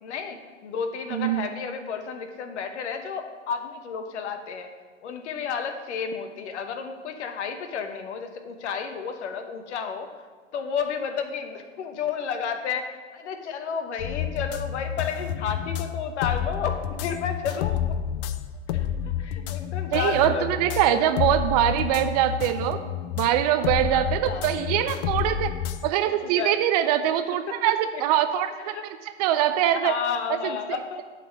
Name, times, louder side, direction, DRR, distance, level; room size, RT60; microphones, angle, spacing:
voice 1, 0.0-4.7 5.0-10.1 10.5-17.8 18.7-18.9 19.1-21.1 23.6-24.5 26.0-26.5 27.7-28.0 28.6-28.8 29.7-31.0, left 6 dB, 65° left, 7 dB, 1.1 m, -32 dB
voice 2, 1.1-1.5 19.9-22.8 23.2-25.5 25.8-28.7 29.2-30.0 30.3-30.6, right 11 dB, 35° right, 10 dB, 0.4 m, -23 dB
sound 1, 14.0-25.9, left 10 dB, 35° left, 0.4 m, -30 dB
7.8 x 4.2 x 6.4 m, 1.5 s
hypercardioid pair, 110°, 37 cm